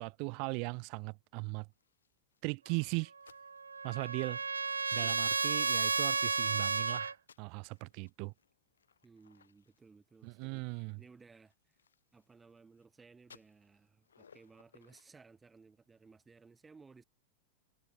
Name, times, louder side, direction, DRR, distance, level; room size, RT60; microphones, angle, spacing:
voice 1, 0.0-1.7 2.4-3.1 3.8-4.4 4.9-8.3 10.2-11.0, right 35 dB, 45° right, 0.7 m, -38 dB
sound 1, 1.7-6.1 6.5-12.9 13.2-15.1, left 7 dB, 70° left, 7.3 m, -67 dB
Trumpet, 3.2-7.1, right 5 dB, 75° right, 0.3 m, -33 dB
voice 2, 9.0-11.8 12.1-17.0, right 4 dB, 15° right, 6.1 m, -59 dB
figure-of-eight pair, 90°, 0 cm